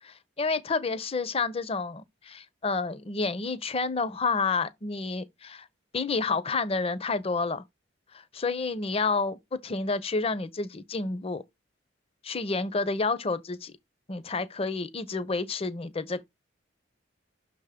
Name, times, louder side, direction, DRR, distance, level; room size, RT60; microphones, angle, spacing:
voice 1, 0.0-5.7 5.9-7.6 8.1-11.4 12.2-13.7 14.1-16.2, left 4 dB, 30° left, 0.6 m, -29 dB
6.2 x 3.4 x 5.0 m
head